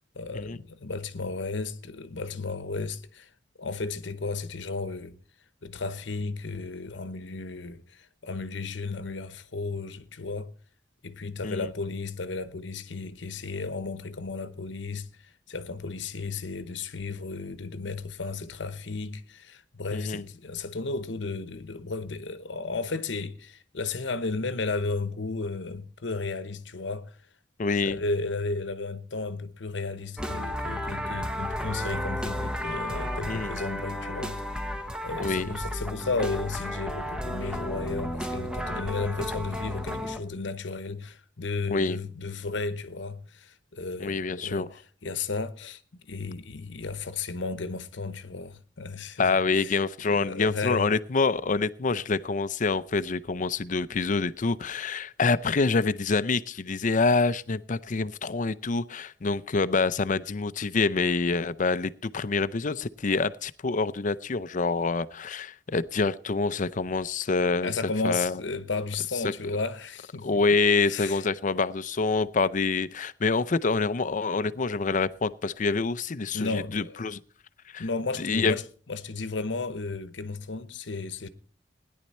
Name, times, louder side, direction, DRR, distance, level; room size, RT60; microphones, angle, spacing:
voice 1, 0.1-3.3 3.6-5.2 5.6-10.5 11.0-27.2 27.8-34.5 35.0-44.7 45.0-49.8 50.0-50.9 67.6-70.4 70.9-71.2 76.3-77.0 77.8-81.3, left 3 dB, 80° left, 1.0 m, -34 dB
voice 2, 19.9-20.2 27.6-28.0 33.3-33.5 35.2-35.5 41.7-42.0 44.0-44.7 49.2-67.7 68.0-68.4 69.2-69.3 70.2-77.2 77.7-77.8 78.2-78.6, left 4 dB, 45° left, 0.6 m, -26 dB
sound 1, 30.2-40.2, equal, 5° right, 0.9 m, -33 dB
17.0 x 10.5 x 4.3 m
head